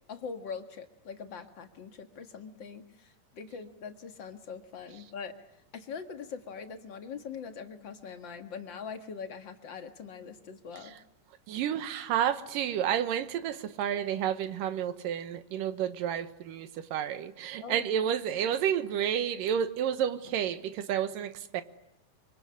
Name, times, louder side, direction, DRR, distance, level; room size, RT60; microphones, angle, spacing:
voice 1, 0.1-5.4 5.7-11.0 17.6-17.9, left 6 dB, 45° left, 1.9 m, -42 dB
voice 2, 11.5-21.6, right 9 dB, 80° right, 2.9 m, -30 dB
25.0 x 24.0 x 9.8 m
omnidirectional pair, 3.9 m